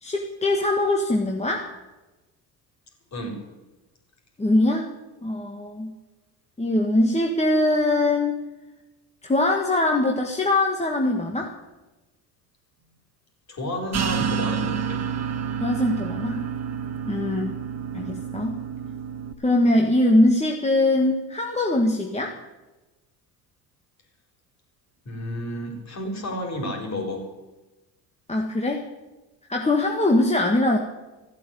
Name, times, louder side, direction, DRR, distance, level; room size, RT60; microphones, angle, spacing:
voice 1, 0.0-1.7 4.4-4.9 5.2-5.9 6.6-8.4 9.2-11.5 15.6-16.5 17.1-17.5 17.9-18.5 19.4-22.3 28.3-28.9 29.5-30.8, left 1 dB, 15° left, 1 dB, 1.7 m, -22 dB
voice 2, 3.1-3.4 13.5-15.0 25.0-27.3, left 1 dB, 35° left, 2 dB, 4.7 m, -31 dB
sound 1, 13.9-19.3, right 7 dB, 35° right, 1.4 m, -29 dB
14.5 x 8.2 x 9.2 m, 1.1 s
supercardioid pair, 85°, 44 cm